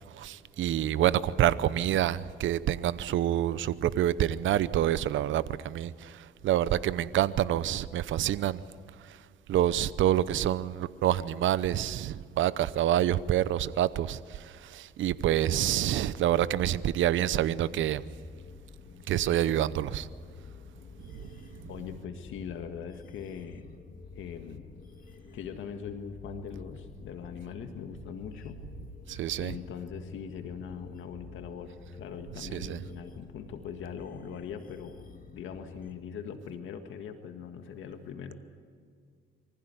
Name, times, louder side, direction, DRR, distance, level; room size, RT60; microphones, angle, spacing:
voice 1, 0.1-8.6 9.0-9.2 9.5-18.0 19.1-20.1 21.1-21.2 29.1-29.5 32.4-32.8, right 12 dB, 75° right, 0.8 m, -27 dB
sound 1, 16.3-35.9, left 4 dB, 45° left, 2.1 m, -49 dB
voice 2, 21.7-23.7 24.2-24.7 25.3-28.6 29.4-35.0 35.3-38.3, left 7 dB, 80° left, 1.8 m, -41 dB
24.5 x 15.5 x 9.7 m
cardioid pair, 90°, 20 cm